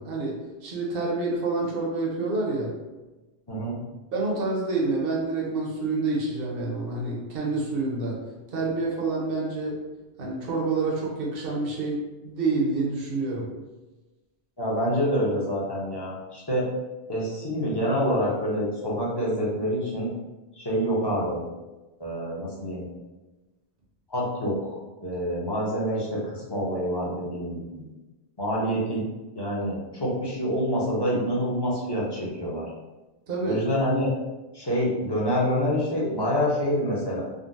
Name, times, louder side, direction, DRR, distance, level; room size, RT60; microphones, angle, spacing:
voice 1, 0.0-2.7 4.1-8.2 8.5-9.8 10.2-13.5 33.3-33.6, right 3 dB, 60° right, -3 dB, 0.9 m, -28 dB
voice 2, 14.6-16.7 17.1-20.1 20.6-21.4 22.0-22.9 24.1-27.9 28.4-29.0 29.4-32.6 33.4-34.1 34.5-37.2, equal, 30° left, -5 dB, 0.6 m, -27 dB
3.7 x 2.0 x 2.5 m, 1.1 s
omnidirectional pair, 1.1 m